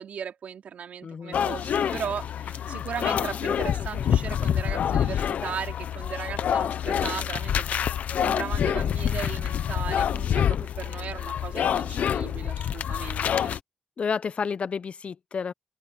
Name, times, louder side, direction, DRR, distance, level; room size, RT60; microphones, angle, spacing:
voice 1, 0.0-7.8 8.2-13.5, right 7 dB, 75° right, 3.9 m, -37 dB
voice 2, 1.0-1.4 14.0-15.5, left 6 dB, 55° left, 0.7 m, -30 dB
sound 1, 1.3-13.6, left 9 dB, 80° left, 0.8 m, -27 dB
open air
cardioid pair, 80°, 3 cm